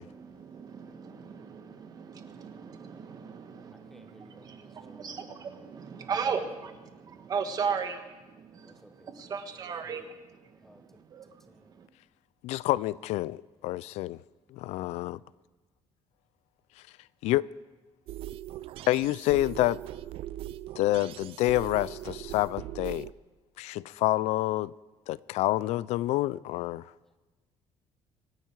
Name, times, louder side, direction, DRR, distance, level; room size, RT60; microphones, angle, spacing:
voice 1, 0.0-11.9, right 6 dB, 35° right, 1.3 m, -37 dB
voice 2, 3.7-5.1 8.6-9.1 9.6-10.1 10.5-11.0 11.5-11.7 27.1-27.2, equal, 5° left, 0.9 m, -58 dB
voice 3, 12.4-14.2 14.5-15.2 17.2-17.5 18.9-19.8 20.8-23.1 23.6-24.7 25.1-26.9, left 16 dB, 80° left, 0.4 m, -28 dB
sound 1, 18.1-23.1, right 13 dB, 55° right, 0.4 m, -40 dB
25.0 x 10.5 x 4.7 m
cardioid pair, 175°, 11 cm